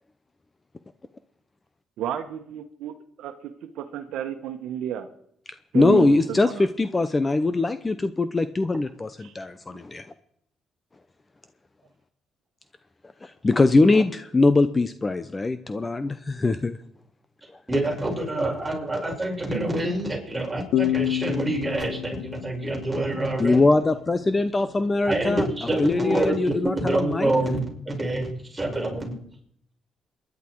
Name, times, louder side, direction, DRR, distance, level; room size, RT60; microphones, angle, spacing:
voice 1, 2.0-5.1 5.7-6.6 9.2-9.3 9.7-9.8 19.5-19.7, right 10 dB, 85° right, 8 dB, 1.2 m, -32 dB
voice 2, 5.7-10.0 13.2-16.8 23.4-25.5 25.8-27.3, left 3 dB, 25° left, 12 dB, 0.8 m, -22 dB
voice 3, 17.7-23.6 25.0-29.1, right 1 dB, 10° right, -2 dB, 6.6 m, -27 dB
sound 1, 20.7-24.1, left 12 dB, 85° left, 0.7 m, -29 dB
27.0 x 11.0 x 4.7 m, 0.71 s
cardioid pair, 90°, 0 cm